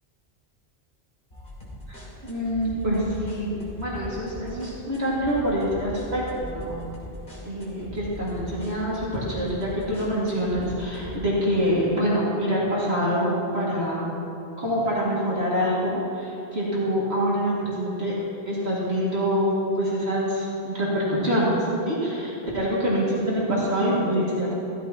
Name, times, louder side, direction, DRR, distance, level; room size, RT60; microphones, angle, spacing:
sound 1, 1.3-11.2, equal, 50° left, 2.7 m, -40 dB
voice 1, 1.9-6.7 7.4-14.1 14.6-18.1 18.5-24.5, equal, 75° right, -7 dB, 2.5 m, -25 dB
15.5 x 13.5 x 3.0 m, 2.8 s
omnidirectional pair, 1.1 m